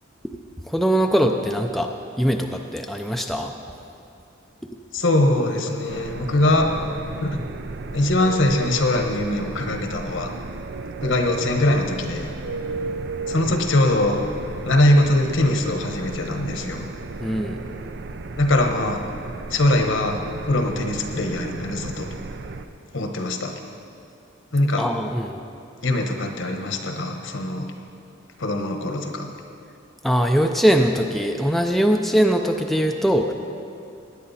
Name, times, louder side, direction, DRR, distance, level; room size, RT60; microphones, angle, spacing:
voice 1, 0.7-1.9 2.2-3.5 13.5-13.6 17.2-17.6 24.8-25.4 30.0-33.3, equal, ahead, 3 dB, 0.5 m, -21 dB
voice 2, 4.9-6.7 7.2-7.4 7.9-10.3 11.0-12.3 13.3-14.2 14.6-16.9 18.3-19.0 19.5-20.2 20.5-22.1 22.9-23.6 24.5-24.8 25.8-27.7 28.4-29.3, left 1 dB, 65° left, 4 dB, 1.2 m, -22 dB
sound 1, 5.9-22.7, right 3 dB, 55° right, 0.5 m, -34 dB
18.0 x 10.0 x 4.2 m, 2.5 s
head